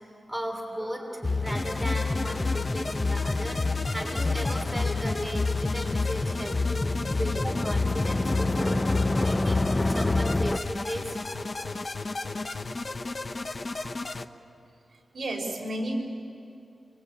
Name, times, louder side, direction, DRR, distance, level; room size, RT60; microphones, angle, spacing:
voice 1, 0.3-11.9 12.2-12.4, equal, ahead, 0 dB, 3.3 m, -36 dB
sound 1, 1.2-10.6, left 3 dB, 20° left, 0.5 m, -27 dB
sound 2, 1.5-14.3, left 3 dB, 40° left, 0.9 m, -34 dB
voice 2, 15.1-16.0, right 1 dB, 55° right, 1 dB, 4.8 m, -32 dB
28.0 x 24.5 x 8.6 m, 2.6 s
wide cardioid pair, 155°, 0 cm